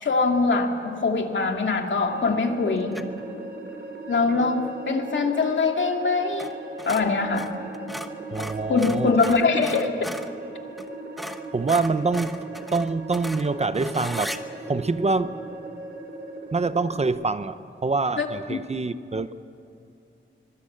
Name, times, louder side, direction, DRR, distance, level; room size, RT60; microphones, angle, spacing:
voice 1, 0.0-3.0 4.1-6.5 6.9-7.5 8.7-9.9 18.2-18.6, left 4 dB, 70° left, 3 dB, 2.4 m, -23 dB
sound 1, 2.1-17.1, right 2 dB, 60° right, 4.0 m, -38 dB
sound 2, 2.9-3.2 6.3-6.5 6.8-10.3 10.8-10.9 11.2-14.4, equal, ahead, 1.1 m, -36 dB
voice 2, 8.3-9.4 11.5-12.4 12.7-14.3 14.7-15.4 16.5-17.6 17.8-19.3, right 3 dB, 35° right, 12 dB, 0.7 m, -25 dB
24.5 x 23.0 x 8.7 m, 2.6 s
wide cardioid pair, 155°, 20 cm